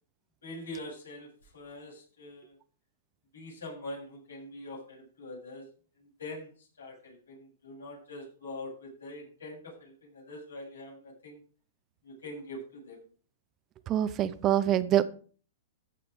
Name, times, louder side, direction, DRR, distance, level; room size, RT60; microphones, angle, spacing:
voice 1, 0.4-2.6 3.3-5.7 6.0-11.4 12.0-13.0, left 1 dB, 85° left, -3 dB, 7.3 m, -44 dB
voice 2, 13.9-15.0, right 11 dB, 30° right, 14 dB, 0.8 m, -25 dB
14.5 x 6.0 x 5.1 m, 0.41 s
hypercardioid pair, 125°, 0 cm